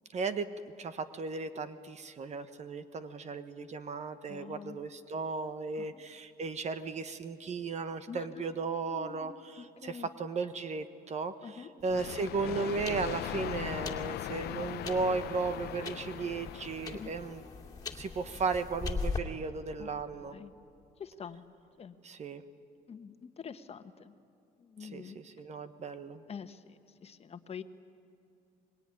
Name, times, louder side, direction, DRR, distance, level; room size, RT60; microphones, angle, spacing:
voice 1, 0.1-0.5 0.8-17.4 17.9-20.4 22.0-22.4 24.8-26.2, right 4 dB, 40° right, 11 dB, 1.2 m, -35 dB
voice 2, 4.3-4.8 5.7-6.1 8.1-10.1 11.4-11.7 13.3-13.5 16.9-17.2 19.8-20.5 21.0-21.5 21.8-21.9 22.9-24.2 24.6-25.2 26.3-27.6, left 6 dB, 35° left, 10 dB, 1.4 m, -46 dB
sound 1, 11.8-19.2, left 4 dB, 20° left, 2.4 m, -41 dB
sound 2, 11.9-17.6, left 14 dB, 70° left, 0.6 m, -39 dB
25.5 x 21.5 x 9.9 m, 2.6 s
cardioid pair, 110°, 17 cm